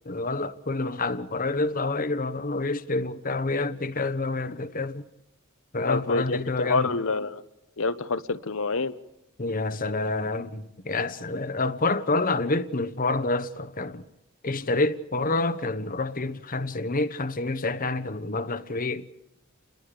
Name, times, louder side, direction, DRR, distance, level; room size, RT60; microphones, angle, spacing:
voice 1, 0.0-5.1 5.7-6.9 9.4-14.0 14.4-19.1, left 2 dB, 40° left, 1.1 m, -28 dB
voice 2, 5.8-7.4 7.8-8.9, left 3 dB, 70° left, 1.2 m, -27 dB
30.0 x 22.5 x 5.2 m
head